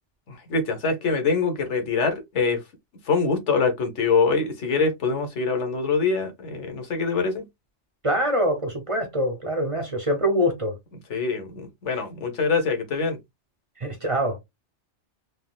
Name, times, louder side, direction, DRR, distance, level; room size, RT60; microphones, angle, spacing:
voice 1, 0.3-2.6 3.1-7.4 11.1-13.2, left 4 dB, 85° left, 1.2 m, -24 dB
voice 2, 8.0-10.7 13.8-14.4, equal, 35° right, 0.6 m, -24 dB
3.5 x 2.4 x 2.3 m
omnidirectional pair, 1.2 m